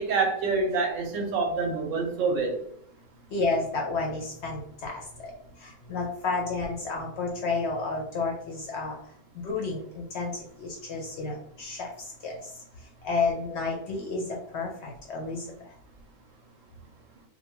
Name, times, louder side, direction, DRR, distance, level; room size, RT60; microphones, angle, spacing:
voice 1, 0.0-2.6, right 4 dB, 70° right, 2 dB, 0.9 m, -26 dB
voice 2, 3.3-5.0 5.6-9.0 9.4-11.9 12.2-12.4 13.0-14.2 14.5-15.5, left 3 dB, 65° left, 0 dB, 0.7 m, -31 dB
2.6 x 2.1 x 3.0 m, 0.67 s
omnidirectional pair, 1.5 m